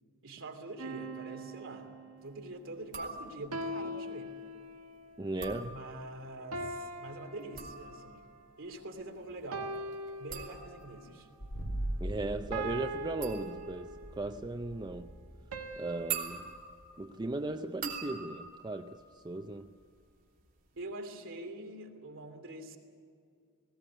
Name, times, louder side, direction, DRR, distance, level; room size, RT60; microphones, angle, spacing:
voice 1, 0.2-2.0 2.2-4.3 5.6-8.2 8.6-9.7 10.2-11.3 20.8-22.8, right 2 dB, 65° right, 2.9 m, -44 dB
sound 1, 0.8-2.4 3.5-5.0 6.5-8.2 9.5-11.0 12.5-14.3 15.5-16.6, right 1 dB, 80° right, 1.5 m, -41 dB
sound 2, 2.8-3.7 5.2-6.3 7.3-20.0 20.3-20.8, right 6 dB, 40° right, 3.3 m, -45 dB
voice 2, 5.2-5.8 12.0-15.1 15.8-16.5 17.0-19.8, right 2 dB, 20° right, 0.5 m, -37 dB
sound 3, 11.4-17.0, right 1 dB, 55° left, 3.6 m, -41 dB
19.5 x 17.0 x 9.8 m
head